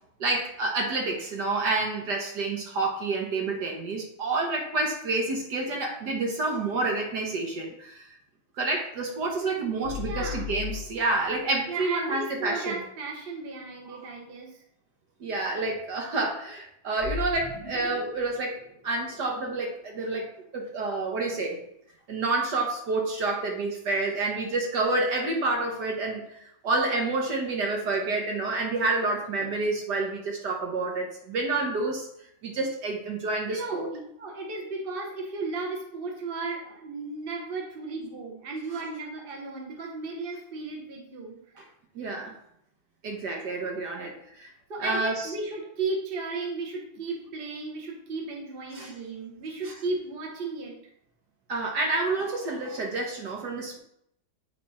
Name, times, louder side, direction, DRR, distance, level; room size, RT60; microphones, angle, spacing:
voice 1, 0.2-8.2 8.6-12.8 13.9-14.0 15.2-20.3 20.5-21.6 22.1-32.1 32.4-33.9 41.6-41.7 41.9-42.3 43.0-44.5 44.8-45.3 48.7-48.9 49.6-49.7 51.5-53.8, right 3 dB, 60° right, 1 dB, 1.5 m, -29 dB
sound 1, 9.8-11.4 17.0-20.1, left 7 dB, 20° left, 1.0 m, -37 dB
voice 2, 10.0-10.4 11.7-14.6 29.4-29.5 33.5-41.4 43.4-43.5 43.9-44.1 44.7-50.8, right 3 dB, 35° right, 0 dB, 1.1 m, -35 dB
9.8 x 3.4 x 4.2 m, 0.74 s
omnidirectional pair, 2.3 m